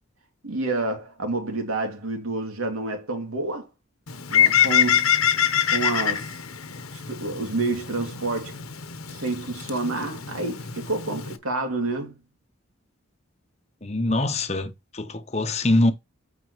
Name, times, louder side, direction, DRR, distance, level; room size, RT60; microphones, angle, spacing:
voice 1, 0.4-3.7 4.3-5.1 5.7-6.4 6.9-8.6 9.1-12.2, right 2 dB, 85° right, 2.7 m, -29 dB
Bird, 4.1-11.4, left 9 dB, 90° left, 1.1 m, -25 dB
voice 2, 13.8-15.9, left 2 dB, 30° left, 0.9 m, -23 dB
9.3 x 5.8 x 3.2 m
head